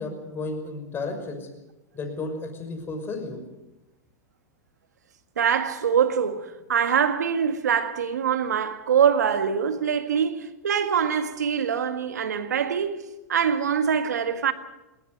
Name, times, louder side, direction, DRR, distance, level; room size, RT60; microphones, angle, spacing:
voice 1, 0.0-1.5 1.9-3.4, left 3 dB, 25° left, 6.0 m, -33 dB
voice 2, 5.4-13.0 13.3-14.5, right 7 dB, 85° right, 1.8 m, -24 dB
19.5 x 19.0 x 8.0 m
hypercardioid pair, 110°, 9 cm